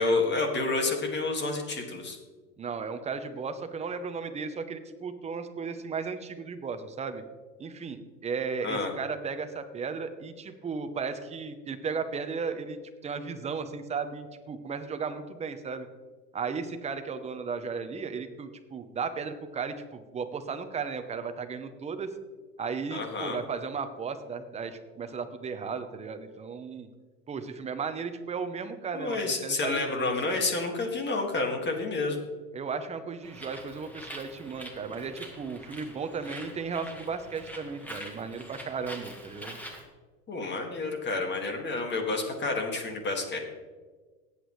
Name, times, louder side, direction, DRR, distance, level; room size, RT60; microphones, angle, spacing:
voice 1, 0.0-2.2 8.6-8.9 22.9-23.4 28.9-32.2 40.3-43.4, left 3 dB, 20° left, 3 dB, 2.0 m, -29 dB
voice 2, 2.6-7.2 7.6-12.8 13.0-15.9 16.3-22.1 22.6-26.9 27.3-30.1 32.5-39.6, right 5 dB, 15° right, 8 dB, 0.7 m, -35 dB
Bird, 33.2-39.8, equal, 5° left, 1.6 m, -44 dB
18.5 x 8.3 x 3.2 m, 1.4 s
hypercardioid pair, 125°, 48 cm